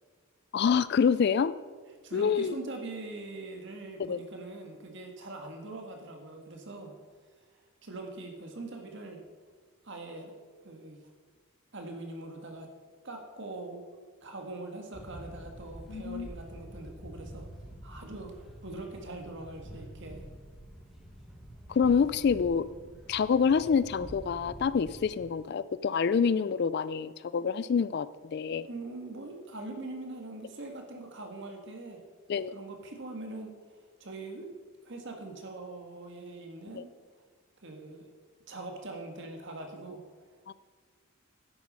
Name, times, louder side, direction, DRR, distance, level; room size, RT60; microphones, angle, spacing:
voice 1, 0.5-1.5 2.1-2.6 4.0-4.2 15.9-16.3 21.7-22.7 23.1-28.1 28.3-28.7 32.3-32.5 36.7-36.8 40.5-40.6, left 6 dB, 50° left, 16 dB, 0.3 m, -27 dB
voice 2, 2.0-6.9 7.8-9.2 9.8-10.3 10.6-11.0 11.7-12.7 13.0-17.5 17.8-20.3 28.6-32.0 32.5-34.5 34.8-36.9 37.6-38.0 38.5-40.0, right 2 dB, 55° right, 3 dB, 1.7 m, -42 dB
sound 1, 14.9-25.2, equal, ahead, 1.2 m, -47 dB
10.5 x 8.4 x 5.4 m, 1.5 s
head